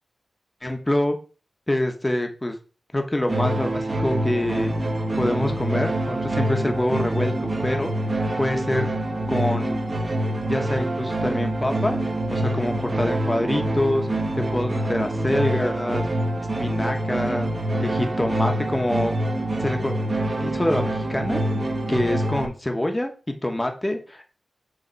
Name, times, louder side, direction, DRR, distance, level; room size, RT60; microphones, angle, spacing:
voice 1, 0.6-1.2 1.7-2.6 2.9-4.7 5.2-7.9 8.4-8.9 9.3-9.8 10.5-12.0 12.3-16.0 16.6-17.5 17.8-19.1 19.6-20.0 20.4-21.4 21.9-23.1 23.4-24.3, left 1 dB, 15° left, 4 dB, 1.0 m, -25 dB
sound 1, 3.3-22.5, right 1 dB, 35° right, 1.1 m, -26 dB
6.6 x 3.3 x 4.5 m, 0.36 s
wide cardioid pair, 120°, 0 cm